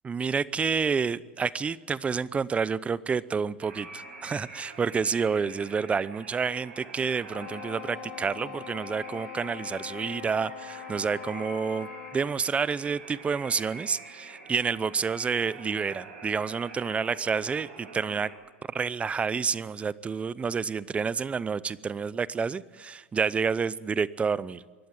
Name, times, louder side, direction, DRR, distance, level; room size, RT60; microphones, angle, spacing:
voice 1, 0.0-18.3 18.7-24.6, right 5 dB, 20° right, 19 dB, 0.7 m, -29 dB
sound 1, 3.6-18.3, right 3 dB, 85° right, 7.6 m, -46 dB
Wind instrument woodwind instrument, 7.3-12.4, left 14 dB, 60° left, 1.2 m, -42 dB
26.0 x 12.0 x 8.9 m, 1.4 s
hypercardioid pair, 110°, 7 cm